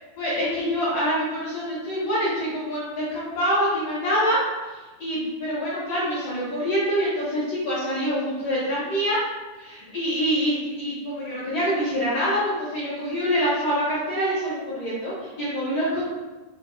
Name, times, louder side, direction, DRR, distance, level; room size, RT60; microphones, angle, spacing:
voice 1, 0.2-9.2 9.6-16.0, equal, 80° left, -8 dB, 1.4 m, -25 dB
6.4 x 2.4 x 2.5 m, 1.2 s
omnidirectional pair, 4.3 m